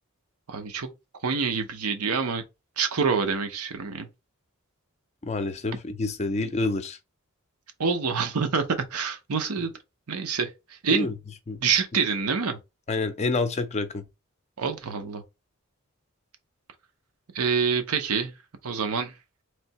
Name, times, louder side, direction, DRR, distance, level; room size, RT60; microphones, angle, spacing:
voice 1, 0.5-0.9 1.2-2.4 2.8-4.1 7.8-9.7 10.1-11.1 11.6-12.6 14.6-15.2 17.3-18.3 18.6-19.1, right 5 dB, 85° right, 0.8 m, -26 dB
voice 2, 5.2-7.0 10.9-11.1 11.5-11.6 12.9-14.0, left 3 dB, 30° left, 0.4 m, -28 dB
3.3 x 2.8 x 4.1 m
head